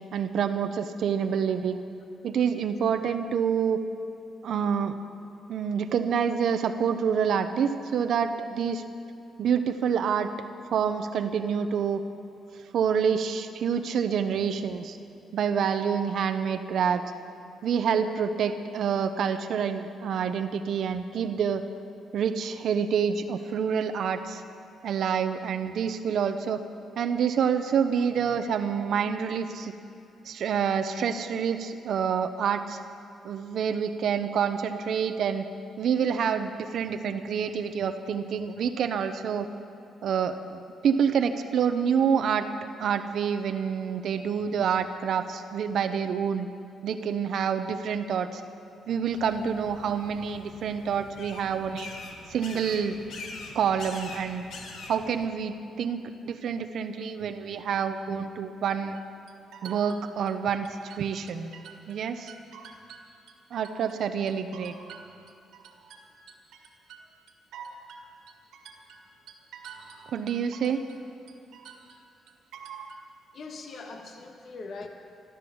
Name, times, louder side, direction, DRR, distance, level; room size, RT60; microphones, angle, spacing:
voice 1, 0.1-1.8 2.2-3.8 4.4-4.9 5.5-8.8 9.4-10.3 10.7-12.0 12.7-15.0 15.3-17.0 17.6-21.6 22.1-24.4 24.8-26.6 27.0-29.7 30.2-32.8 33.2-35.4 35.8-39.5 40.0-46.5 46.8-48.4 48.9-51.9 52.3-53.0 53.5-54.4 54.9-59.0 59.6-61.5 61.9-62.3 63.5-64.8 70.1-70.8, right 7 dB, 65° right, 8 dB, 0.8 m, -27 dB
sound 1, 49.1-55.3, left 3 dB, 75° left, 2.0 m, -44 dB
sound 2, 58.9-62.0 62.3-64.0 64.3-71.0 71.3-73.0, right 6 dB, 85° right, 2.0 m, -47 dB
voice 2, 73.3-74.9, left 4 dB, 55° left, 4 dB, 1.5 m, -41 dB
14.5 x 13.5 x 7.1 m, 2.7 s
cardioid pair, 90°, 0 cm